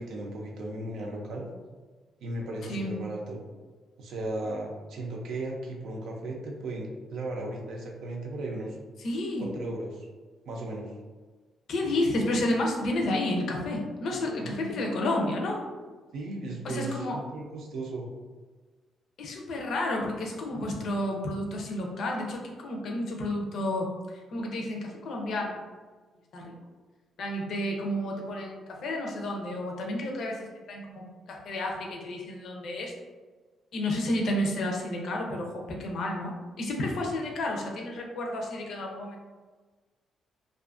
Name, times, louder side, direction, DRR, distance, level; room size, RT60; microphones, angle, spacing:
voice 1, 0.0-1.5 2.2-3.4 4.0-8.8 9.4-10.1 10.5-10.9 14.4-14.8 16.1-18.1, right 2 dB, 75° right, -1 dB, 0.5 m, -36 dB
voice 2, 9.0-9.5 11.7-15.6 16.6-17.2 19.2-25.6 26.3-26.5 27.2-32.9 33.7-39.2, left 1 dB, 60° left, 0 dB, 0.5 m, -31 dB
2.5 x 2.4 x 2.4 m, 1.3 s
cardioid pair, 150°, 0 cm